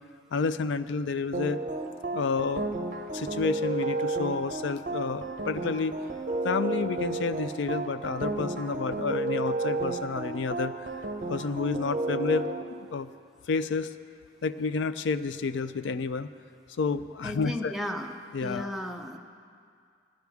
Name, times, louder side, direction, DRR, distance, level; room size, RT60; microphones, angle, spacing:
voice 1, 0.3-1.6 2.1-2.8 3.1-6.0 6.4-10.9 11.3-12.5 12.8-13.1 13.5-13.9 14.4-16.3 16.8-17.7 18.3-18.7, left 4 dB, 80° left, 12 dB, 0.4 m, -30 dB
sound 1, 1.3-12.6, right 3 dB, 45° right, 0.8 m, -32 dB
voice 2, 17.2-18.1 18.4-19.2, left 1 dB, ahead, 1 dB, 0.6 m, -34 dB
15.5 x 11.5 x 3.5 m, 2.2 s
head